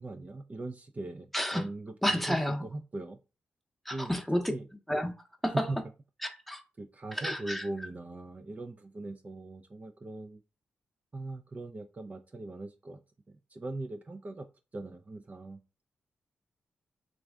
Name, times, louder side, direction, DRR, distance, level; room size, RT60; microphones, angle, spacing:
voice 1, 0.0-1.3 1.5-3.2 3.9-4.1 4.5-4.7 5.7-5.8 6.8-10.4 11.1-13.0 13.3-14.5 14.7-15.6, right 2 dB, 35° right, 0.5 m, -40 dB
voice 2, 1.3-1.7 2.0-2.6 3.9-4.4 4.9-5.1 5.4-5.7 6.2-6.6 7.1-7.6, equal, 5° left, 0.8 m, -30 dB
3.1 x 2.5 x 3.5 m
supercardioid pair, 50°, 4 cm